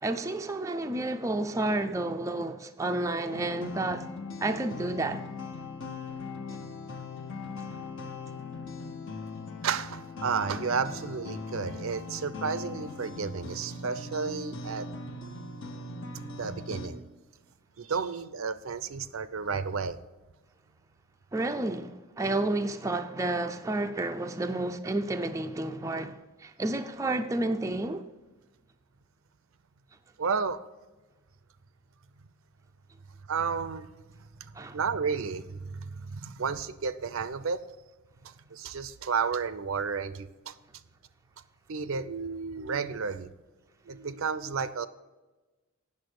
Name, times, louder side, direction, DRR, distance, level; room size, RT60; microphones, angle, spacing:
voice 1, 0.0-4.1 4.4-5.2 21.3-28.1 34.5-34.8, right 2 dB, 15° right, 0.4 m, -31 dB
sound 1, 3.3-16.9, left 3 dB, 60° left, 1.0 m, -40 dB
voice 2, 9.6-14.9 16.4-17.0 17.8-20.0 30.2-30.6 33.3-33.9 34.4-37.7 38.2-40.6 41.7-43.3 43.9-44.9, right 5 dB, 70° right, 0.5 m, -32 dB
8.6 x 6.7 x 6.5 m
head